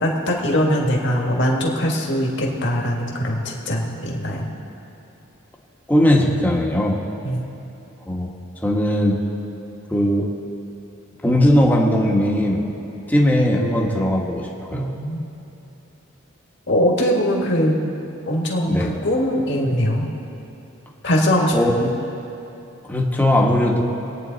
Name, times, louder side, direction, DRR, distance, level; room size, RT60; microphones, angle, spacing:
voice 1, 0.0-4.5 7.2-7.4 14.7-15.2 16.7-17.8 18.3-20.1 21.0-22.0, equal, 60° left, -1 dB, 1.8 m, -21 dB
voice 2, 5.9-7.0 8.1-8.3 8.6-9.2 9.9-10.3 11.2-12.7 13.1-14.9 18.7-18.9 21.5-21.7 22.9-23.8, left 1 dB, 10° left, -1 dB, 1.3 m, -18 dB
23.0 x 9.2 x 4.0 m, 2.9 s
head